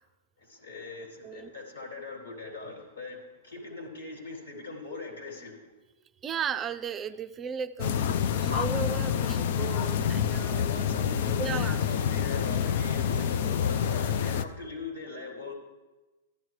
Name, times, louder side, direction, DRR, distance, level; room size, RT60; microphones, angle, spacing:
voice 1, 0.4-5.6 10.6-15.5, left 3 dB, 90° left, -1 dB, 3.2 m, -41 dB
voice 2, 6.2-8.0 8.3-10.7 11.4-11.8, right 7 dB, 25° right, 10 dB, 0.4 m, -35 dB
sound 1, 7.8-14.4, left 8 dB, 60° left, 0.5 m, -27 dB
13.5 x 11.5 x 3.2 m, 1.2 s
hypercardioid pair, 125°, 0 cm